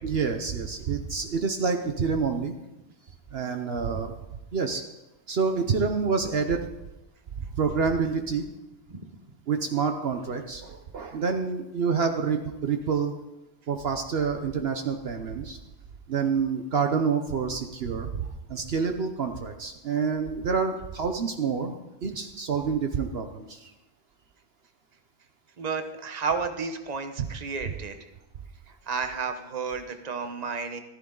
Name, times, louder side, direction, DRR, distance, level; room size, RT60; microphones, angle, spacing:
voice 1, 0.0-2.5 3.3-4.1 4.5-4.8 5.3-6.7 7.4-8.4 9.5-13.1 13.7-15.6 16.1-23.7, right 5 dB, 65° right, 6 dB, 1.1 m, -28 dB
voice 2, 25.6-28.1 28.7-30.8, right 5 dB, 40° right, 7 dB, 1.1 m, -32 dB
14.5 x 14.0 x 3.9 m, 0.98 s
omnidirectional pair, 1.1 m